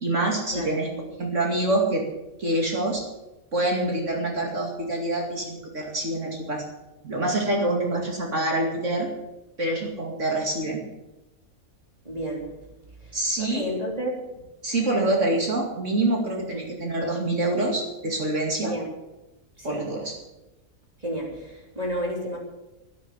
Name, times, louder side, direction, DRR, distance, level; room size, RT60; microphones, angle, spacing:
voice 1, 0.0-0.9 1.2-2.0 2.4-3.0 3.5-6.6 7.0-9.1 9.6-10.8 13.1-13.7 14.6-18.7 19.6-20.1, right 2 dB, 60° right, 0 dB, 2.8 m, -26 dB
voice 2, 0.5-1.0 7.9-8.0 12.1-12.5 13.0-13.1 13.4-14.2 16.5-16.6 18.6-18.9 19.6-19.8 21.0-22.4, equal, 25° right, -3 dB, 3.6 m, -31 dB
12.0 x 12.0 x 8.2 m, 1.0 s
omnidirectional pair, 1.5 m